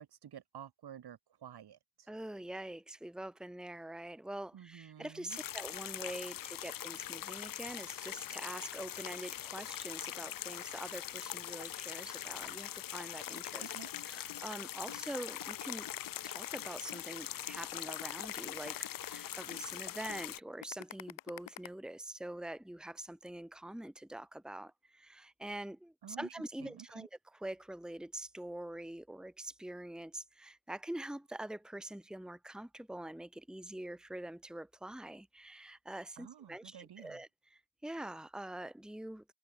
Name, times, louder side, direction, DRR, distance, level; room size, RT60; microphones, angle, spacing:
voice 1, 0.0-2.1 4.5-5.4 13.6-13.9 26.0-26.3 26.6-27.1 36.2-37.2, right 9 dB, 60° right, 2.3 m, -51 dB
voice 2, 2.1-13.7 14.0-15.9 16.2-39.2, right 1 dB, ahead, 1.5 m, -45 dB
sound 1, 5.3-20.4, left 12 dB, 50° left, 0.7 m, -42 dB
sound 2, 13.3-14.4 14.9-15.0 15.4-17.0 17.5-17.6 18.0-19.6 20.1-20.2 20.6-21.7, left 14 dB, 85° left, 2.7 m, -47 dB
cardioid pair, 65°, 43 cm